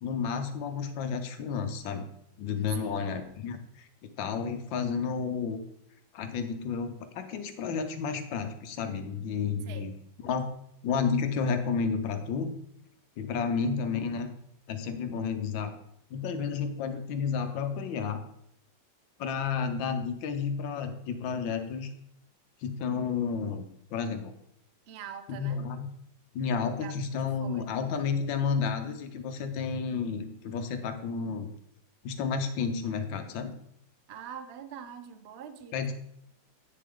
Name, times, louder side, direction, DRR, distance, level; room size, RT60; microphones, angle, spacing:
voice 1, 0.0-2.1 2.4-3.9 4.2-5.6 6.1-9.9 10.2-10.5 10.8-12.5 13.2-14.3 14.7-15.8 16.1-18.2 19.2-21.9 22.6-24.3 25.3-25.9 26.3-31.5 32.0-33.5 35.7-35.9, left 5 dB, 90° left, 8 dB, 1.6 m, -31 dB
voice 2, 2.6-3.1 9.6-9.9 24.9-25.6 26.8-27.0 27.4-27.8 34.1-35.9, right 8 dB, 75° right, 10 dB, 0.5 m, -44 dB
8.7 x 6.8 x 3.6 m, 0.73 s
omnidirectional pair, 2.0 m